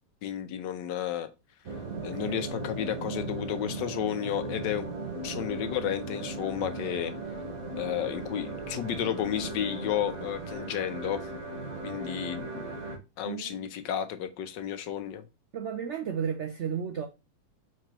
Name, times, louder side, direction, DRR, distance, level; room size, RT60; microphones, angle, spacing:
voice 1, 0.2-1.3 2.0-4.9 5.2-7.1 7.7-11.2 11.8-12.7 13.2-15.2, left 10 dB, 75° left, 1.2 m, -32 dB
sound 1, 1.7-13.0, right 2 dB, 55° right, 1.4 m, -37 dB
voice 2, 2.0-2.5 13.3-13.6 15.5-17.1, right 7 dB, 85° right, 0.6 m, -34 dB
4.6 x 3.8 x 2.8 m
omnidirectional pair, 2.0 m